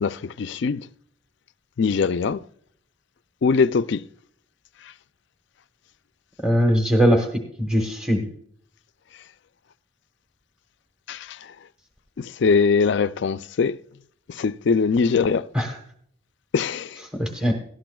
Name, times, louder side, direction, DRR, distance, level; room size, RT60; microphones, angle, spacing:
voice 1, 0.0-0.9 1.8-2.4 3.4-4.0 11.1-11.5 12.2-13.8 14.3-15.5 16.5-17.0, left 5 dB, 55° left, 0.4 m, -22 dB
voice 2, 6.4-7.3 7.6-8.3 15.5-15.8 17.2-17.5, equal, 5° right, 1.0 m, -20 dB
18.0 x 12.5 x 2.3 m
head